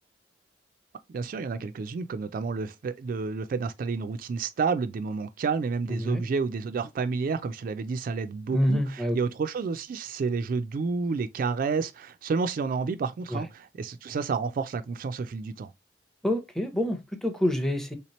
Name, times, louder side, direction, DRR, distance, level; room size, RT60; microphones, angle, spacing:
voice 1, 1.1-15.7, right 4 dB, 50° right, 0.3 m, -30 dB
voice 2, 5.9-6.2 8.5-9.2 13.3-13.4 16.2-18.0, equal, 5° left, 0.6 m, -27 dB
3.4 x 2.8 x 3.0 m
head